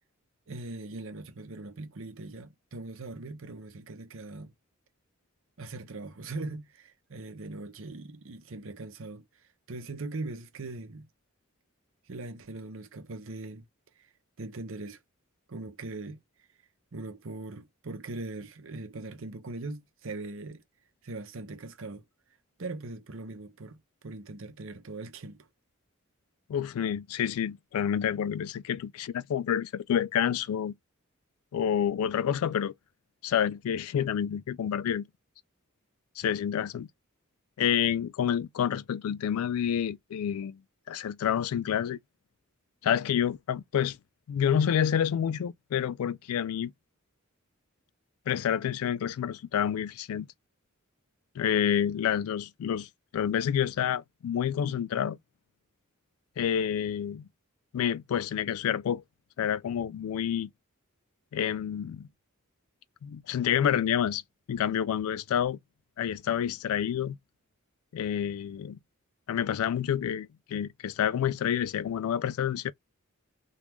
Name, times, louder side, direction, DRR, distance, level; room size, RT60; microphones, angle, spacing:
voice 1, 0.5-4.5 5.6-11.1 12.1-13.6 14.0-14.1 14.4-15.0 15.5-16.2 16.9-20.6 21.0-22.0 22.6-23.8 24.0-25.5, right 2 dB, 65° right, 0.7 m, -40 dB
voice 2, 26.5-30.7 31.5-32.7 33.2-35.1 36.2-36.9 37.6-40.6 40.9-42.0 42.8-44.0 44.3-46.7 48.3-50.3 51.4-55.2 56.4-57.3 57.7-59.0 59.4-60.5 61.3-62.1 63.0-64.2 64.5-65.6 66.0-67.2 67.9-68.8 69.3-72.7, left 9 dB, 80° left, 0.3 m, -28 dB
3.0 x 2.4 x 3.5 m
head